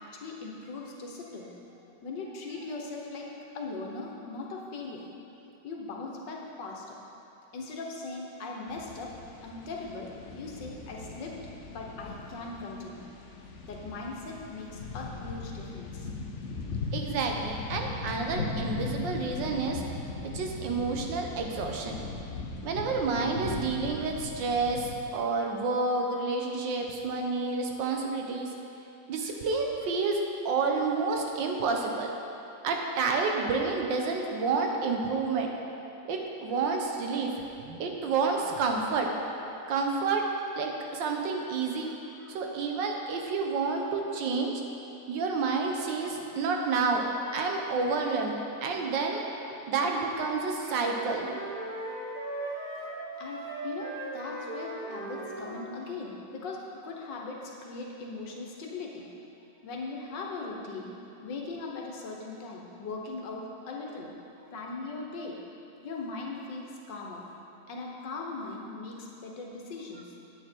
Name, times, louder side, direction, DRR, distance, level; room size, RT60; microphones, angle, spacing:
voice 1, 0.0-1.5 2.0-5.0 5.6-7.0 7.5-9.1 9.4-11.4 11.7-13.1 13.7-16.1 49.5-49.6 53.2-59.1 59.6-60.9 61.2-64.1 64.5-65.4 65.8-67.3 67.7-70.1, left 3 dB, 75° left, -1 dB, 1.8 m, -39 dB
sound 1, 8.7-25.0, left 3 dB, 55° left, 0.9 m, -38 dB
voice 2, 16.9-19.8 20.3-22.0 22.6-28.5 29.1-32.1 32.6-35.5 36.0-37.3 37.6-39.1 39.7-40.2 40.5-41.9 42.2-44.5 45.1-48.4 48.6-51.4, right 4 dB, 80° right, 2 dB, 1.6 m, -29 dB
sound 2, 50.6-55.7, right 2 dB, 50° right, 1.7 m, -38 dB
9.3 x 8.4 x 4.5 m, 2.8 s
omnidirectional pair, 2.0 m